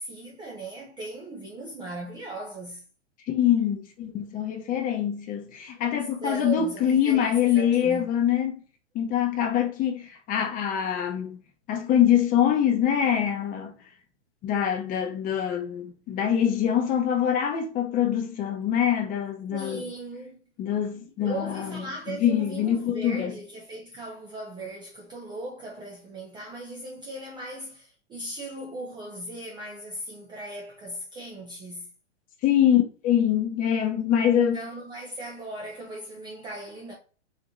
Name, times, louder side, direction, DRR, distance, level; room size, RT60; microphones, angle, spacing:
voice 1, 0.0-2.8 6.2-8.1 19.5-20.4 21.2-31.9 34.2-36.9, right 2 dB, 15° right, 0.5 m, -38 dB
voice 2, 3.3-8.5 8.9-11.4 11.7-13.7 14.4-19.8 20.6-23.4 32.4-34.6, left 9 dB, 25° left, 0.8 m, -24 dB
3.9 x 2.6 x 2.9 m
hypercardioid pair, 125°, 36 cm